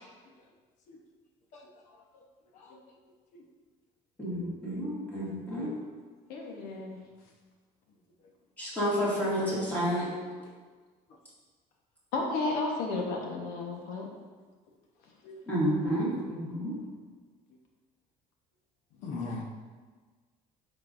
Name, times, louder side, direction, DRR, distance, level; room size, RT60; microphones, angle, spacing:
voice 1, 4.2-5.7 8.6-10.1 15.5-16.7, equal, 10° left, -9 dB, 2.1 m, -30 dB
voice 2, 6.3-7.0 12.1-14.1, left 3 dB, 85° left, 0 dB, 1.3 m, -32 dB
voice 3, 19.0-19.4, left 3 dB, 55° left, 1 dB, 1.0 m, -39 dB
11.5 x 4.3 x 2.6 m, 1.4 s
cardioid pair, 180°, 15 cm